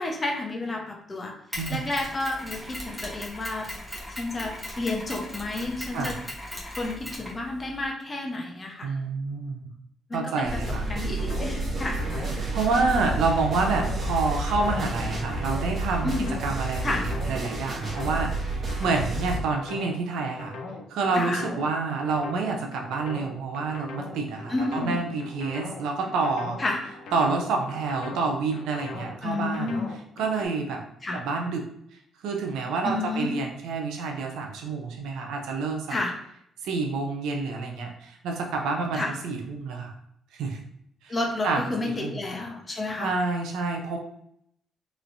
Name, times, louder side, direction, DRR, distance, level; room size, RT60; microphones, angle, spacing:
voice 1, 0.0-1.3 1.7-3.7 4.2-6.2 6.8-8.9 10.1-10.6 10.9-12.0 16.0-16.4 16.8-17.1 21.1-21.4 24.5-25.0 26.6-26.8 29.2-29.9 31.0-31.2 32.8-33.4 35.9-36.1 38.9-39.1 41.1-43.1, left 2 dB, 30° left, 1 dB, 0.8 m, -30 dB
Mechanisms, 1.5-7.9, left 1 dB, 5° right, 1.0 m, -38 dB
voice 2, 8.8-9.7 10.1-10.9 12.5-16.1 16.4-20.6 20.9-26.6 27.1-29.7 30.2-30.8 31.1-31.7 32.2-36.0 36.6-39.9 40.3-40.6 41.0-41.1 41.4-41.7 42.0-42.2 43.0-44.0, right 4 dB, 85° right, 2 dB, 0.6 m, -28 dB
sound 1, 10.4-19.4, right 2 dB, 40° right, 0.9 m, -30 dB
sound 2, 11.2-30.4, left 3 dB, 85° left, 0.5 m, -40 dB
3.1 x 3.0 x 2.6 m, 0.71 s
cardioid pair, 90°, 0 cm